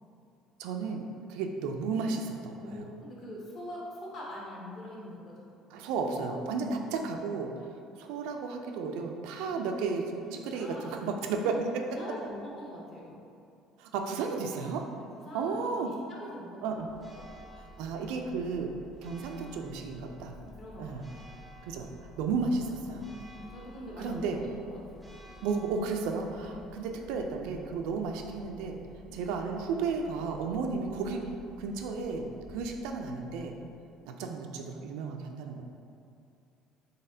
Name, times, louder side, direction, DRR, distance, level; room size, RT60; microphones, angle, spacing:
voice 1, 0.6-2.9 5.7-11.7 13.8-14.9 15.3-15.9 16.6-16.9 17.8-18.7 19.0-20.3 20.8-21.1 21.6-21.9 22.2-23.1 24.0-24.4 25.4-28.8 29.1-31.3 31.6-33.6 34.1-35.6, right 4 dB, 85° right, 3 dB, 0.3 m, -33 dB
voice 2, 2.6-5.3 6.5-7.2 9.4-9.9 10.2-10.9 11.2-11.6 11.9-13.2 14.9-16.9 17.1-17.3 20.3-21.1 22.9-25.1 26.3-26.7 29.0-29.3, left 1 dB, 35° left, -4 dB, 0.8 m, -44 dB
Church bell, 16.7-33.9, equal, 5° right, 0.4 m, -52 dB
4.0 x 3.5 x 2.7 m, 2.5 s
cardioid pair, 165°, 0 cm